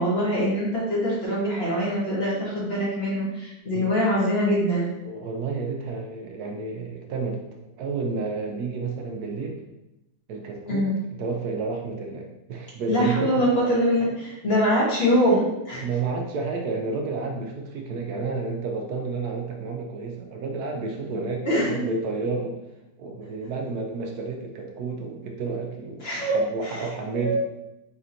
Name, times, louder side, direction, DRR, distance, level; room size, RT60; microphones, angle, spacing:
voice 1, 0.0-4.9 10.7-10.9 12.9-15.8 21.5-21.8 26.0-26.8 27.1-27.4, equal, 40° left, -6 dB, 1.3 m, -23 dB
voice 2, 5.0-7.4 7.8-9.6 10.3-13.5 15.8-22.6 23.0-27.4, right 4 dB, 70° right, 1 dB, 1.1 m, -31 dB
4.1 x 2.8 x 3.8 m, 0.93 s
omnidirectional pair, 1.8 m